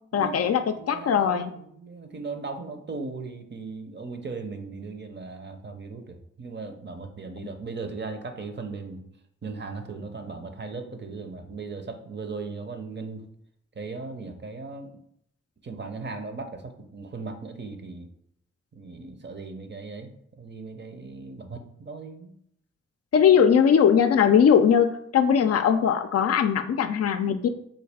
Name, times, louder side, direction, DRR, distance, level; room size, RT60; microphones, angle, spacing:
voice 1, 0.1-1.5 23.1-27.5, left 7 dB, 55° left, 9 dB, 0.4 m, -20 dB
voice 2, 0.7-9.0 9.4-13.2 13.8-14.9 15.6-18.1 18.7-22.3, right 4 dB, 35° right, 6 dB, 0.7 m, -38 dB
3.9 x 2.3 x 3.4 m, 0.71 s
supercardioid pair, 40°, 30 cm